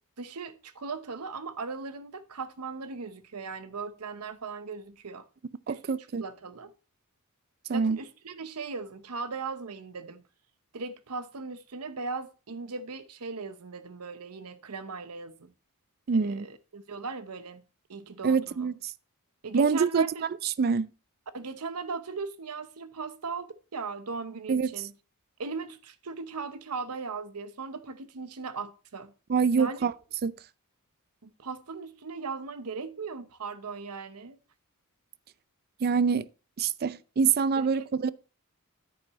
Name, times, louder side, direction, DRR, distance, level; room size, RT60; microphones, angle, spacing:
voice 1, 0.2-5.2 5.7-5.8 6.2-6.7 7.7-10.3 10.7-15.5 16.1-17.6 17.9-18.7 19.4-20.3 21.3-24.9 25.4-29.1 29.6-29.9 31.2-34.4 37.6-37.9, right 4 dB, 80° right, 0.9 m, -38 dB
voice 2, 5.7-6.2 7.7-8.0 16.1-16.5 18.2-18.7 19.5-20.1 20.4-20.9 24.5-24.7 29.3-29.9 30.2-30.3 35.8-36.3 36.6-38.1, right 5 dB, 45° right, 0.4 m, -25 dB
10.5 x 9.3 x 3.1 m
head